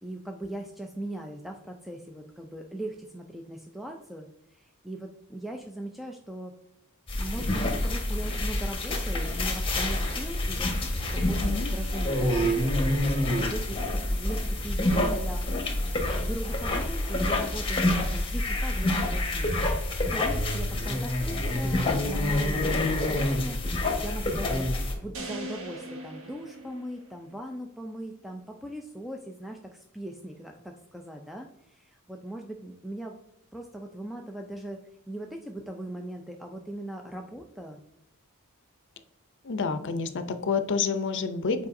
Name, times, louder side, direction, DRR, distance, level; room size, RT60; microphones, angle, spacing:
voice 1, 0.0-6.5 7.2-15.4 16.2-24.7 25.0-33.1 33.5-34.8 35.1-37.8, right 1 dB, ahead, 2 dB, 0.4 m, -39 dB
sound 1, 7.1-24.9, left 1 dB, 25° left, 1.3 m, -27 dB
voice 2, 11.2-11.7 39.4-41.7, left 5 dB, 55° left, 10 dB, 0.6 m, -29 dB
sound 2, 25.1-27.4, right 1 dB, 65° right, 1.0 m, -40 dB
8.2 x 4.7 x 2.6 m, 0.85 s
head